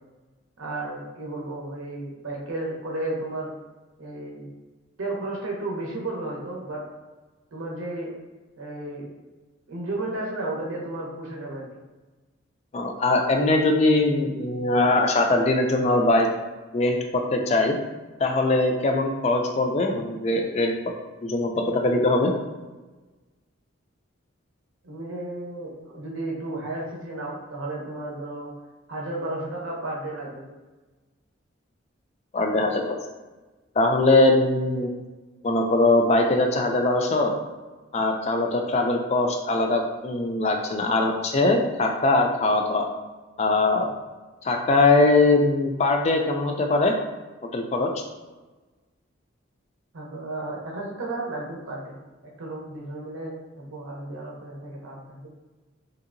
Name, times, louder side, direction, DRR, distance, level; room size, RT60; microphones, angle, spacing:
voice 1, 0.6-3.5 4.0-4.5 5.0-6.8 7.5-8.1 8.6-9.1 9.7-11.6 24.8-28.5 28.9-30.5 49.9-51.9 52.4-55.3, right 2 dB, 80° right, -2 dB, 0.7 m, -33 dB
voice 2, 12.7-16.3 16.7-17.8 18.2-20.7 21.2-22.3 32.3-33.0 33.8-34.9 35.4-37.3 37.9-42.9 43.4-43.9 44.4-46.9 47.5-47.9, left 2 dB, 30° left, 3 dB, 0.3 m, -21 dB
3.2 x 2.8 x 2.5 m, 1.2 s
head